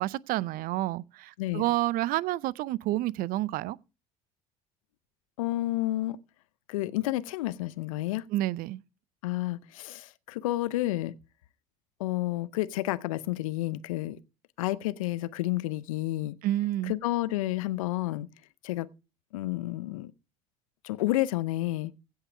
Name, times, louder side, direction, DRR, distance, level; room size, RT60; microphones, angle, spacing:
voice 1, 0.0-3.8 8.3-8.8 16.4-16.9, right 15 dB, 55° right, 0.5 m, -29 dB
voice 2, 5.4-6.2 6.7-8.2 9.2-11.2 12.0-14.2 14.6-16.4 16.9-18.3 18.6-18.9 19.3-20.1 20.8-21.9, left 16 dB, 75° left, 0.6 m, -30 dB
16.0 x 5.7 x 4.9 m
hypercardioid pair, 60°, 18 cm